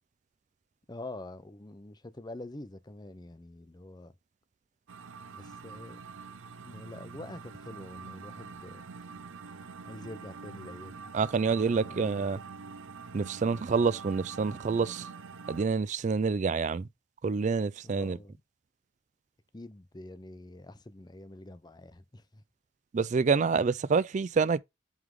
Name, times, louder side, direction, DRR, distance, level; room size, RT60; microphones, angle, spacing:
voice 1, 0.9-4.1 5.3-6.0 6.6-8.8 9.4-11.1 11.5-12.3 17.8-18.4 19.5-22.4, left 2 dB, 20° left, 0.6 m, -46 dB
sound 1, 4.9-15.7, right 5 dB, 85° right, 0.6 m, -45 dB
voice 2, 11.1-12.4 13.1-15.0 15.5-16.9 17.2-18.2 22.9-24.6, right 5 dB, 40° right, 0.3 m, -27 dB
8.0 x 3.5 x 3.7 m
head